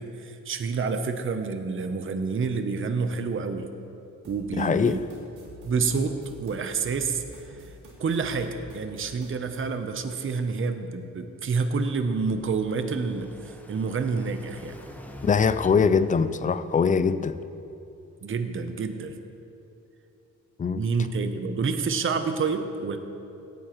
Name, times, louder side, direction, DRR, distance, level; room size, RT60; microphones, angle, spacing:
voice 1, 0.0-3.7 4.3-5.0 5.6-7.2 8.0-14.8 18.2-19.2 20.7-23.0, right 4 dB, 40° right, 0.8 m, -28 dB
sound 1, 4.2-9.7, right 1 dB, 85° right, 2.3 m, -48 dB
voice 2, 4.6-5.0 15.2-17.4 20.6-20.8, left 5 dB, 25° left, 0.4 m, -22 dB
Car passing by, 11.4-17.0, equal, 5° left, 1.0 m, -46 dB
17.5 x 9.2 x 3.1 m
cardioid pair, 90°, 31 cm